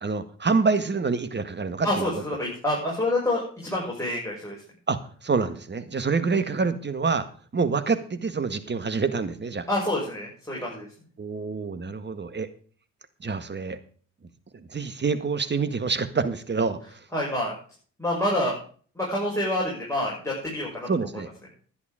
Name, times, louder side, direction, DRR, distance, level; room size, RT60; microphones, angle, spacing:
voice 1, 0.0-2.1 4.9-7.3 7.5-9.7 11.2-12.5 13.2-13.8 14.7-16.8 20.9-21.3, right 4 dB, 30° right, 12 dB, 1.8 m, -26 dB
voice 2, 1.8-4.6 9.7-10.9 17.1-17.5 18.0-18.6 18.9-20.9, left 1 dB, 10° left, -5 dB, 6.4 m, -27 dB
11.0 x 10.5 x 5.1 m, 0.44 s
hypercardioid pair, 50°, 35 cm